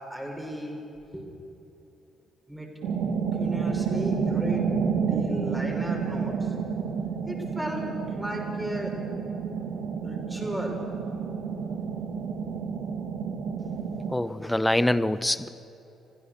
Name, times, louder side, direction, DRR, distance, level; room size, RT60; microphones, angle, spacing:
voice 1, 0.1-0.8 1.1-1.3 2.5-2.7 3.4-6.5 7.3-7.8 8.2-8.9 10.0-10.8, equal, 10° right, 0 dB, 6.3 m, -35 dB
sound 1, 2.8-14.1, right 6 dB, 60° right, 2.1 m, -30 dB
voice 2, 14.1-15.5, left 1 dB, 10° left, 15 dB, 0.9 m, -24 dB
26.0 x 16.5 x 6.7 m, 3.0 s
figure-of-eight pair, 45°, 0 cm